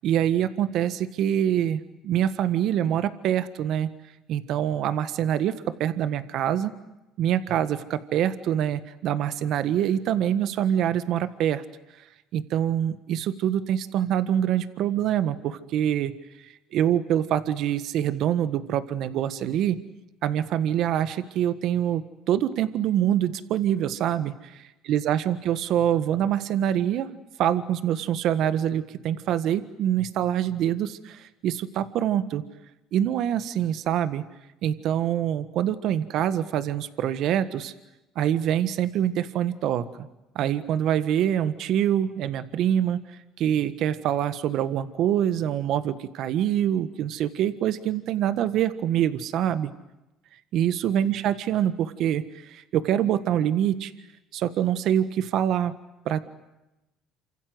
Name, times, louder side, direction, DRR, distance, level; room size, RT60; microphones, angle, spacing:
voice 1, 0.0-3.9 4.3-6.7 7.2-11.6 12.3-16.1 16.4-19.8 20.2-24.3 24.9-27.1 27.4-32.4 32.9-34.2 34.6-37.7 38.1-40.1 40.3-49.7 50.5-53.9 54.3-55.7 56.0-56.2, right 10 dB, 65° right, 12 dB, 1.5 m, -25 dB
28.5 x 26.0 x 7.9 m, 0.97 s
supercardioid pair, 90°, 0 cm